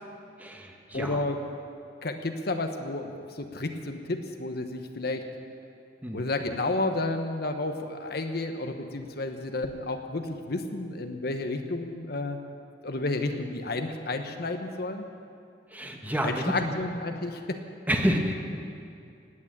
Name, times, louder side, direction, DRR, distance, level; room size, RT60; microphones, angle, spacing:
voice 1, 0.4-1.2 6.0-6.3 15.7-16.5 17.9-18.4, equal, 10° right, 2 dB, 1.3 m, -28 dB
voice 2, 0.9-1.4 2.0-5.2 6.1-12.4 12.8-15.0 16.2-17.6, left 2 dB, 60° left, 5 dB, 1.1 m, -31 dB
17.0 x 9.0 x 8.8 m, 2.5 s
head